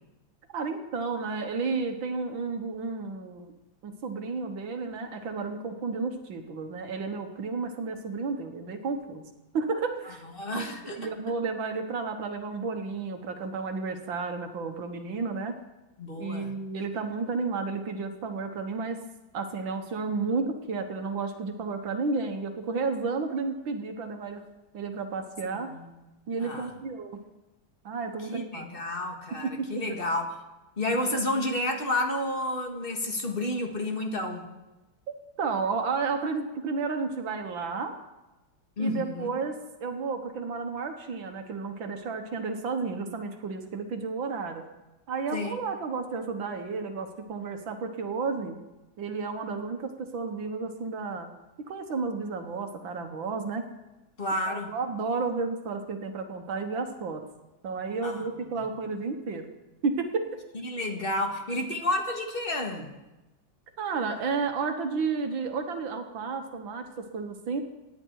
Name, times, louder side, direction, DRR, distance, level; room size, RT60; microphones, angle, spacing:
voice 1, 0.5-3.5 3.8-9.2 9.5-10.2 10.5-15.5 16.2-19.0 19.3-24.4 24.7-25.7 26.3-27.2 27.9-28.7 29.4-29.8 35.4-37.9 38.8-44.6 45.1-48.6 49.0-51.3 51.7-53.6 54.5-57.2 57.6-59.5 59.8-60.4 63.8-67.6, right 4 dB, 80° right, 5 dB, 2.1 m, -32 dB
voice 2, 10.4-11.1 16.0-16.5 25.7-25.9 26.3-26.7 28.3-30.3 30.8-34.5 38.8-39.3 45.3-45.6 54.2-54.7 58.0-58.3 60.5-62.9, left 1 dB, 30° left, 2 dB, 2.1 m, -30 dB
26.5 x 10.0 x 4.7 m, 1.1 s
omnidirectional pair, 2.1 m